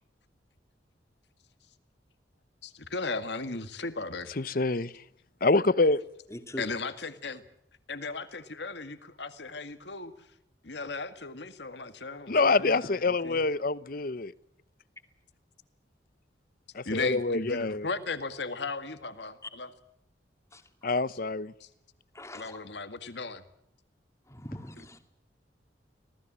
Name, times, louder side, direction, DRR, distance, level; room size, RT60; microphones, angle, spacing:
voice 1, 2.6-4.4 6.6-7.4 7.9-10.3 10.6-13.4 16.9-19.7 21.6-21.7 22.3-23.4, left 3 dB, 70° left, 2.0 m, -36 dB
voice 2, 4.4-4.9 5.4-6.0 12.3-14.3 16.7-17.9 20.8-21.5, left 3 dB, 50° left, 0.9 m, -26 dB
voice 3, 6.3-6.6 19.4-19.5 20.5-20.7 22.1-22.6 24.3-25.0, left 1 dB, 15° left, 2.3 m, -42 dB
26.0 x 18.5 x 7.6 m
head